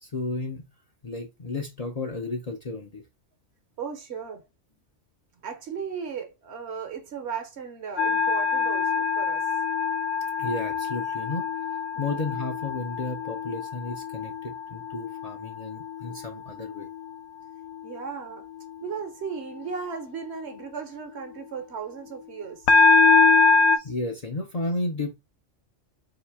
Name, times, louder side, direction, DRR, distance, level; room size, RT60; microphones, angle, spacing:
voice 1, 0.0-0.7 1.0-3.0 10.4-11.4 12.0-16.9 23.8-25.2, left 2 dB, 45° left, 0.6 m, -32 dB
voice 2, 3.8-4.4 5.4-9.4 11.9-12.3 17.8-18.4 18.8-22.7, right 6 dB, 65° right, 1.1 m, -36 dB
sound 1, 8.0-16.3 16.7-17.1 22.7-23.8, left 4 dB, 65° left, 0.8 m, -23 dB
3.1 x 2.9 x 4.6 m
omnidirectional pair, 1.2 m